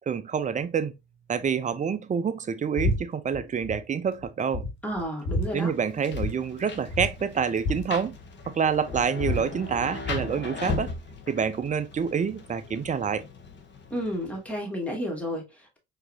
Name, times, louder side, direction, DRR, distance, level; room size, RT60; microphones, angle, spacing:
voice 1, 0.1-0.9 1.3-4.6 5.5-8.2 8.5-10.9 11.3-13.2, right 6 dB, 25° right, 0.6 m, -27 dB
sound 1, 2.8-3.0 3.3-3.8 4.2-4.3 4.5-5.5 6.1-6.3 6.6-6.7 6.9-8.6 8.9-10.3, left 1 dB, 70° left, 1.7 m, -30 dB
voice 2, 4.8-5.7 13.9-15.8, equal, 5° left, 2.1 m, -31 dB
Rain, 5.5-14.6, left 4 dB, 35° left, 1.1 m, -39 dB
4.6 x 2.9 x 2.7 m
hypercardioid pair, 65°, 31 cm